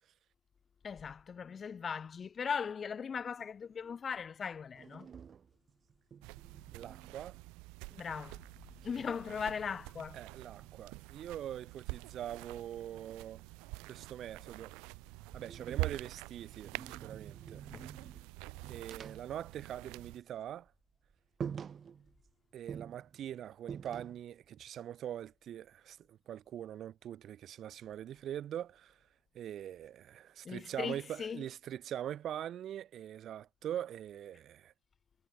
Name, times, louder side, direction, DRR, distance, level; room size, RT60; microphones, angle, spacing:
voice 1, 0.8-5.1 7.9-8.4 8.8-10.2 17.7-17.8 30.4-31.4, left 6 dB, 45° left, 0.5 m, -39 dB
sound 1, 4.7-7.9 8.2-11.1 12.5-14.5 14.9-20.2 20.5-20.7 21.0-21.1 21.4-22.3 22.7-24.4, right 7 dB, 50° right, 3.2 m, -49 dB
sound 2, 6.2-20.2, right 27 dB, 85° right, 2.7 m, -46 dB
voice 2, 6.7-7.4 10.1-13.4 13.9-14.7 15.3-17.6 18.7-20.7 22.5-29.0 29.3-34.7, right 11 dB, 65° right, 2.9 m, -43 dB
supercardioid pair, 70°, 0 cm